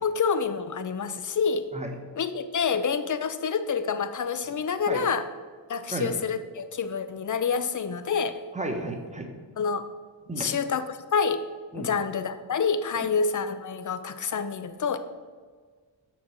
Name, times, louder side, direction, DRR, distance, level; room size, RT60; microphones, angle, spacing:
voice 1, 0.0-1.7 2.2-5.2 5.7-8.3 9.6-9.9 10.4-11.5 11.7-15.0, left 6 dB, 45° left, 11 dB, 0.6 m, -27 dB
voice 2, 8.5-9.3 10.3-10.5 11.7-11.9 12.9-13.1, right 2 dB, 15° right, 3 dB, 1.2 m, -33 dB
6.2 x 5.7 x 6.4 m, 1.5 s
wide cardioid pair, 80°, 45 cm